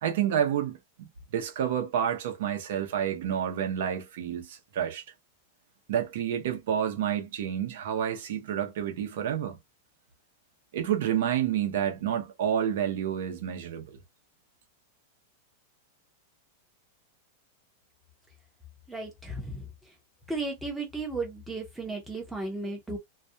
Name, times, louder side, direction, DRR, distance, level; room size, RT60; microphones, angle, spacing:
voice 1, 0.0-5.0 5.9-9.6 10.7-14.0, right 9 dB, 60° right, 0.7 m, -29 dB
voice 2, 18.9-20.0 20.3-23.0, right 2 dB, 5° right, 0.7 m, -35 dB
2.3 x 2.2 x 2.7 m
supercardioid pair, 175°, 0 cm